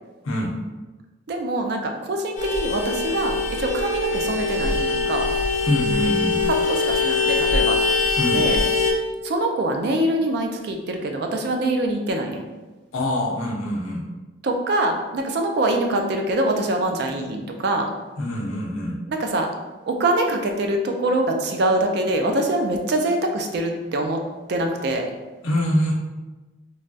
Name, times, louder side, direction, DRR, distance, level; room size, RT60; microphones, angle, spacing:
voice 1, 1.3-5.3 6.7-7.8 8.3-8.6 9.2-12.4 14.4-17.9 19.1-19.5 19.9-24.2 24.5-25.1, right 1 dB, 55° right, 3 dB, 0.3 m, -24 dB
Vehicle horn car horn honking, 2.4-8.9, left 3 dB, 35° left, 0.5 m, -22 dB
voice 2, 5.6-6.4 8.2-8.4 12.9-14.0 18.2-19.0 25.4-25.9, left 1 dB, 85° left, -1 dB, 0.6 m, -24 dB
3.2 x 2.2 x 2.6 m, 1.2 s
head